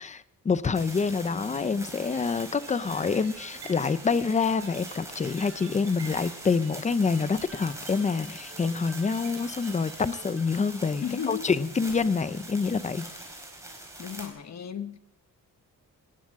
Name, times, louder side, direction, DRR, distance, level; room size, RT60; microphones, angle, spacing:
voice 1, 0.0-13.1, left 5 dB, 20° left, 15 dB, 0.6 m, -27 dB
sound 1, 0.7-14.3, right 1 dB, 10° right, 4.6 m, -43 dB
sound 2, 1.6-10.5, right 6 dB, 50° right, 2.9 m, -49 dB
voice 2, 11.0-11.5 14.0-15.0, left 8 dB, 50° left, 9 dB, 1.2 m, -34 dB
19.5 x 18.5 x 3.6 m, 0.78 s
wide cardioid pair, 155°, 33 cm